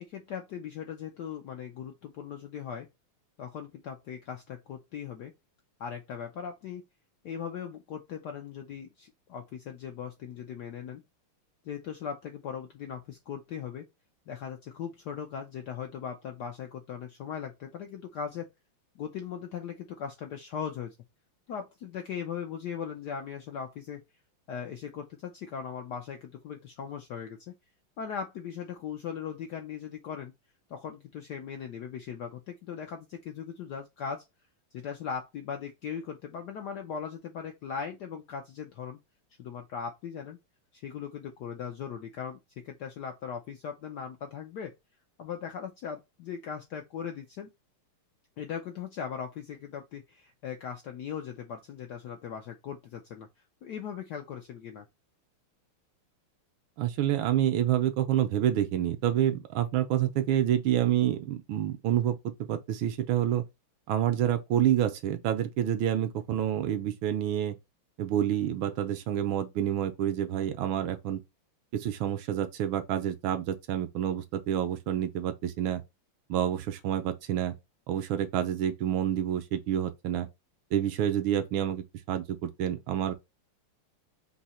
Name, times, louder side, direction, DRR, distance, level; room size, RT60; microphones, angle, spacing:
voice 1, 0.0-2.9 3.4-5.3 5.8-6.8 7.2-11.0 11.6-13.8 14.3-18.5 18.9-20.9 21.5-24.0 24.5-27.6 28.0-30.3 30.7-34.2 34.7-39.0 39.4-40.4 40.7-44.7 45.2-47.5 48.4-53.3 53.6-54.8, left 7 dB, 75° left, 0.9 m, -39 dB
voice 2, 56.8-63.4 63.9-67.6 68.0-71.2 71.7-75.8 76.3-77.5 77.9-80.3 80.7-83.1, right 11 dB, 75° right, 1.3 m, -28 dB
4.0 x 2.7 x 4.2 m
omnidirectional pair, 2.4 m